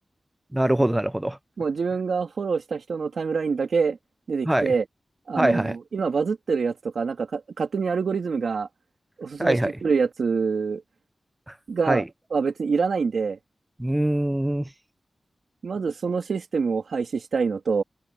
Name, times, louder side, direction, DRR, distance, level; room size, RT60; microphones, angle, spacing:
voice 1, 0.5-1.4 4.5-4.7 5.4-5.8 9.4-9.8 11.5-11.6 11.9-12.1 13.8-14.7, right 1 dB, 10° right, 0.5 m, -23 dB
voice 2, 1.6-4.0 4.3-4.8 5.3-8.7 9.2-10.8 11.7-12.0 12.3-13.4 15.6-17.8, right 5 dB, 80° right, 3.3 m, -25 dB
open air
wide cardioid pair, 130°, 0 cm